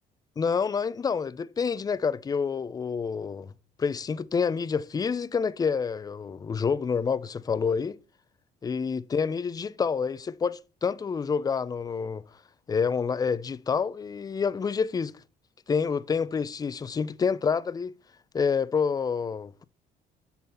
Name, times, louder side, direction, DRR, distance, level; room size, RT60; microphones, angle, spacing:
voice 1, 0.4-3.5 3.8-8.0 8.6-12.2 12.7-15.1 15.7-17.9 18.3-19.6, left 6 dB, 20° left, 0.4 m, -28 dB
9.5 x 4.0 x 4.2 m
cardioid pair, 110°, 17 cm